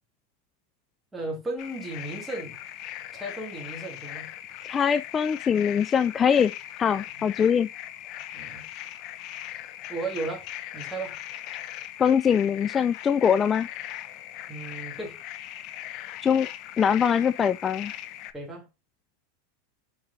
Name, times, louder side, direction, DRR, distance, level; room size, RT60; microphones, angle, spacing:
voice 1, 1.1-2.6 3.1-4.3 7.1-7.3 8.3-8.7 9.9-10.5 10.7-11.2 14.5-15.2 18.3-18.7, right 2 dB, 10° right, 2.9 m, -35 dB
sound 1, 1.6-18.3, left 13 dB, 50° left, 0.8 m, -39 dB
voice 2, 4.7-6.5 6.8-7.7 12.0-13.7 16.2-16.5 16.8-17.9, left 7 dB, 25° left, 0.4 m, -22 dB
7.4 x 4.7 x 2.7 m
hypercardioid pair, 105°, 0 cm